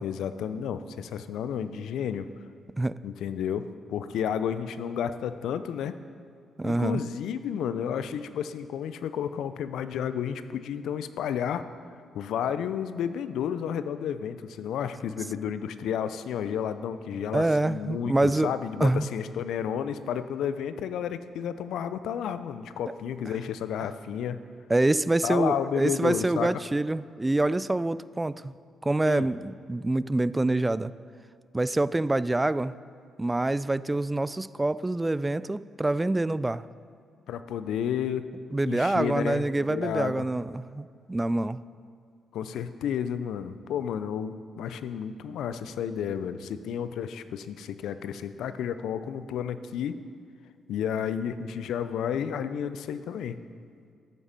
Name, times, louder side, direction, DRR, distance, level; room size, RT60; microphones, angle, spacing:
voice 1, 0.0-2.3 3.0-6.0 6.6-11.6 12.1-24.4 25.2-26.5 29.0-29.3 37.3-38.3 38.6-40.2 42.3-50.0 50.7-53.4, left 8 dB, 75° left, 12 dB, 0.5 m, -31 dB
voice 2, 6.6-7.0 17.3-18.5 18.8-19.1 24.7-28.5 28.8-30.9 31.5-32.7 33.2-36.6 38.5-41.6, right 2 dB, 20° right, 17 dB, 0.3 m, -26 dB
14.0 x 7.2 x 5.3 m, 2.2 s
supercardioid pair, 55°, 0 cm